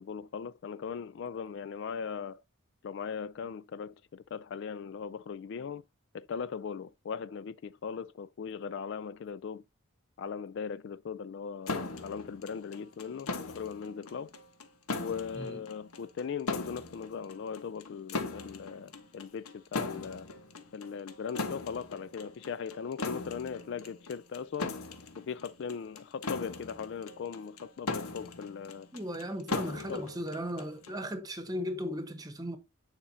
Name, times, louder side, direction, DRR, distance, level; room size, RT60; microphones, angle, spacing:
voice 1, 0.0-2.4 2.8-5.8 6.1-9.6 10.2-14.3 15.0-20.3 20.7-24.8 25.2-28.9 29.7-30.0, left 6 dB, 55° left, 0.3 m, -39 dB
sound 1, 11.7-31.0, left 3 dB, 90° left, 1.1 m, -39 dB
voice 2, 28.9-32.6, equal, 15° right, 1.0 m, -36 dB
10.0 x 4.9 x 2.7 m
head